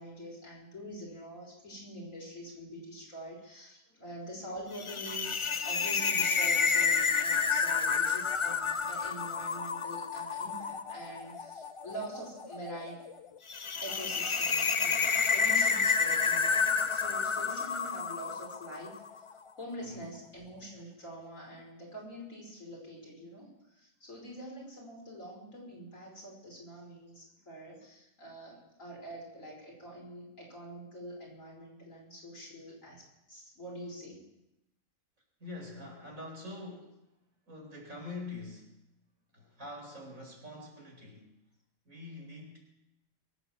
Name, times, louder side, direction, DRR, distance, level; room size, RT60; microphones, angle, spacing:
voice 1, 0.0-13.0 13.8-23.5 23.7-34.2, right 1 dB, 65° left, -2 dB, 5.7 m, -45 dB
sound 1, 4.7-19.1, left 5 dB, 45° left, 0.3 m, -30 dB
voice 2, 35.4-37.1 37.5-38.7 39.3-41.3 41.8-42.6, left 2 dB, 70° right, 0 dB, 4.8 m, -45 dB
22.5 x 8.3 x 7.4 m, 0.90 s
omnidirectional pair, 1.5 m